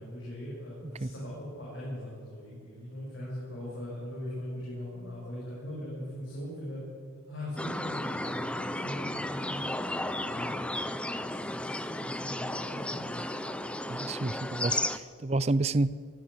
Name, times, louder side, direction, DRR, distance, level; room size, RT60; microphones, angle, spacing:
voice 1, 0.0-6.8 7.2-9.7 10.3-13.3, left 1 dB, 60° left, -7 dB, 7.8 m, -40 dB
sound 1, 7.6-15.0, left 1 dB, 5° left, 0.7 m, -34 dB
voice 2, 13.9-16.0, right 2 dB, 30° right, 17 dB, 0.5 m, -29 dB
23.5 x 15.0 x 8.1 m, 2.1 s
head